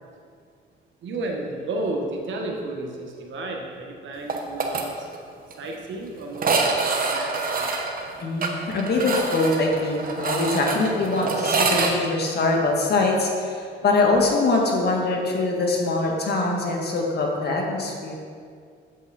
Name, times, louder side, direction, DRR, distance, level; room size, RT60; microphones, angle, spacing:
voice 1, 1.0-5.1 5.6-7.9, right 2 dB, 70° right, 1 dB, 1.4 m, -32 dB
sound 1, 4.3-4.8 5.1-5.2 5.5-5.6 6.3-11.9, right 4 dB, 45° right, 1.1 m, -25 dB
voice 2, 8.2-18.2, left 3 dB, 55° left, 0 dB, 1.6 m, -23 dB
8.2 x 7.4 x 4.1 m, 2.2 s
cardioid pair, 90°, 20 cm